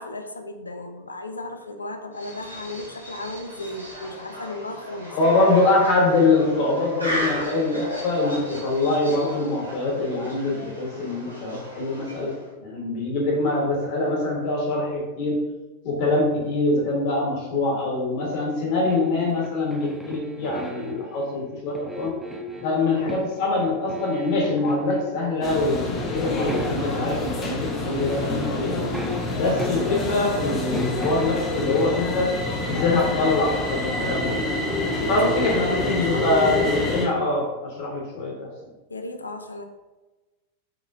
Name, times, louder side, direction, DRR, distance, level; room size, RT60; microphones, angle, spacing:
voice 1, 0.0-5.2 35.0-36.6 38.9-39.6, left 2 dB, 80° left, 6 dB, 0.4 m, -35 dB
sound 1, 2.1-12.5, equal, 80° right, 0.9 m, -35 dB
voice 2, 5.1-12.3 12.6-15.4 15.8-22.2 22.6-28.8 29.3-32.3 32.7-34.4 35.1-38.5, left 2 dB, 45° left, -3 dB, 1.3 m, -24 dB
sound 2, 18.9-21.2 21.7-23.3 23.6-25.1 25.4-25.6 26.0-27.2 27.7-27.8 28.0-30.1 30.4-32.1, equal, 5° right, 0.4 m, -36 dB
sound 3, 25.4-37.1, left 2 dB, 25° left, 0.8 m, -27 dB
4.9 x 3.0 x 2.5 m, 1.2 s
figure-of-eight pair, 90°, 0 cm